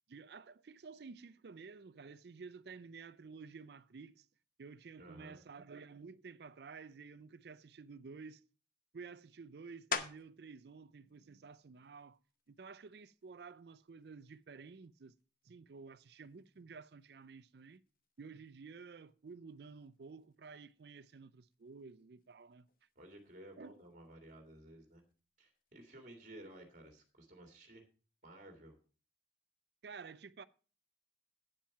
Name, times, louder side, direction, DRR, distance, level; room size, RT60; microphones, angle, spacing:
voice 1, 0.1-4.3 4.6-8.4 8.9-12.2 12.5-15.1 15.4-17.8 18.2-22.7 23.6-23.7 29.8-30.4, right 5 dB, 65° right, 0.5 m, -52 dB
voice 2, 5.0-5.4 23.0-25.0 25.4-27.8 28.2-28.8, right 1 dB, 45° right, 2.1 m, -55 dB
sound 1, 9.9-10.5 11.1-15.5 16.0-21.2 21.5-27.1, left 6 dB, 50° left, 0.8 m, -49 dB
8.8 x 7.4 x 5.7 m
head